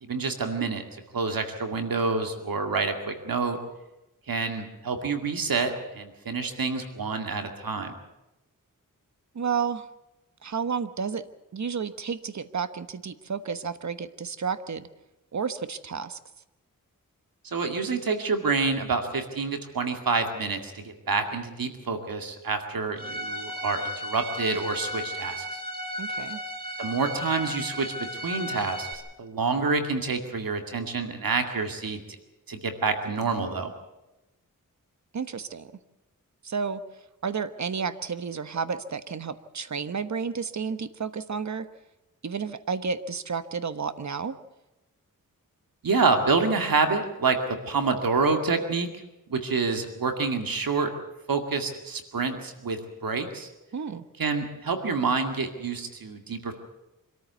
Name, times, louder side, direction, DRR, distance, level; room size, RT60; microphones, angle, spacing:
voice 1, 0.0-0.8 1.1-3.6 4.3-7.9 17.4-25.6 26.8-27.9 28.2-28.9 29.2-32.0 32.5-33.7 45.8-47.4 47.6-48.9 49.3-50.9 51.3-53.5 54.2-56.5, right 4 dB, 80° right, 5 dB, 2.2 m, -27 dB
voice 2, 9.3-9.9 10.4-11.3 11.5-14.9 15.3-16.2 26.0-26.4 35.1-35.7 36.4-36.8 37.2-41.7 42.2-44.4 53.7-54.1, right 6 dB, 55° right, 12 dB, 1.2 m, -31 dB
Bowed string instrument, 23.0-28.9, equal, 25° right, 3.8 m, -35 dB
25.5 x 14.0 x 8.1 m, 0.97 s
wide cardioid pair, 80°, 34 cm